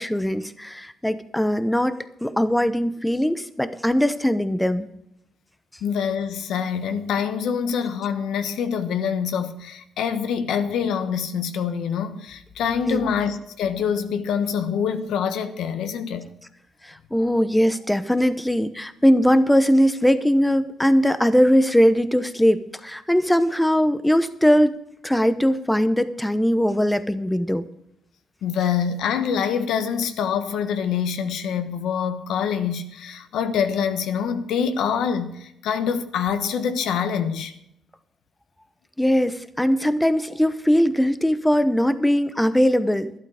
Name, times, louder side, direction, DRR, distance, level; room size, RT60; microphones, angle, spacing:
voice 1, 0.0-4.9 12.9-13.1 16.8-24.8 25.0-27.7 39.0-43.1, equal, 5° left, 0.8 m, -20 dB
voice 2, 5.8-16.3 28.4-37.5, left 7 dB, 80° left, 1.2 m, -25 dB
12.5 x 11.5 x 5.0 m
cardioid pair, 90°, 0 cm